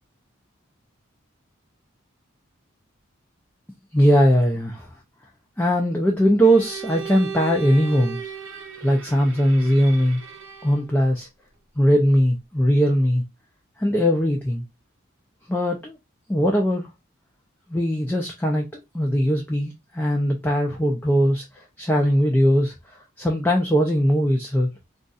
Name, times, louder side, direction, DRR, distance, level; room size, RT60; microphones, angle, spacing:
voice 1, 3.9-4.9 5.6-8.3 8.8-10.2 10.6-11.3 11.8-13.2 13.8-14.6 15.5-16.0 16.3-16.9 17.7-24.7, equal, 10° left, 0.5 m, -20 dB
Bowed string instrument, 6.4-10.9, right 7 dB, 75° right, 0.8 m, -36 dB
2.4 x 2.4 x 3.9 m
head